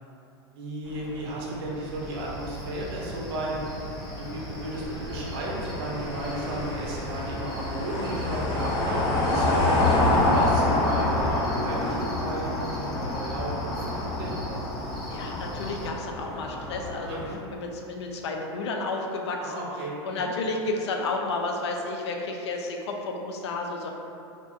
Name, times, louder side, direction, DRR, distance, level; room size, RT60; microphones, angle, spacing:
voice 1, 0.5-3.6 4.2-9.7 10.3-14.3 17.1-17.4 19.4-20.3, right 2 dB, 60° right, -3 dB, 0.6 m, -34 dB
sound 1, 0.9-17.3, left 2 dB, 45° left, 0.7 m, -28 dB
Cricket, 1.7-15.9, equal, ahead, 0.5 m, -40 dB
voice 2, 15.1-17.2 17.5-19.6 20.0-23.9, left 3 dB, 80° left, 1 dB, 0.4 m, -31 dB
2.6 x 2.1 x 2.5 m, 2.6 s
hypercardioid pair, 110°, 14 cm